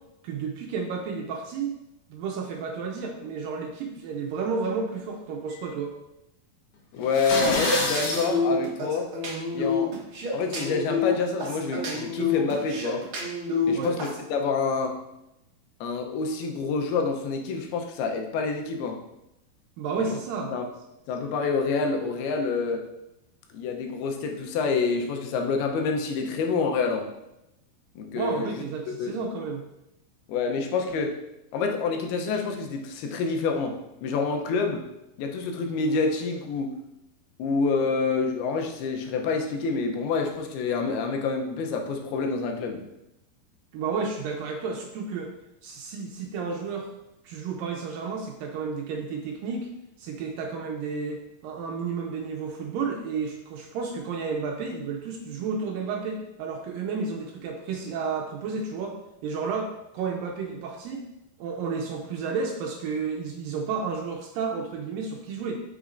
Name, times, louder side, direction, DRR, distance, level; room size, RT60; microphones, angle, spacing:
voice 1, 0.2-1.8 2.1-5.9 13.7-14.0 19.8-20.5 28.2-29.6 43.7-45.3 45.6-46.9 47.2-49.7 50.0-61.0 61.4-65.6, right 5 dB, 75° right, 1 dB, 2.2 m, -31 dB
voice 2, 6.9-9.1 9.5-9.9 10.3-13.1 13.6-15.0 15.8-19.0 20.0-20.2 20.5-20.7 21.1-22.8 23.5-27.1 28.0-29.2 30.3-31.2 31.5-34.9 35.2-36.7 37.4-42.8, left 4 dB, 85° left, 3 dB, 2.7 m, -27 dB
sound 1, 7.0-8.3, left 2 dB, 65° left, 2.4 m, -27 dB
sound 2, 7.3-14.2, left 3 dB, 55° right, 1.4 m, -28 dB
8.1 x 6.3 x 2.5 m, 0.88 s
omnidirectional pair, 4.5 m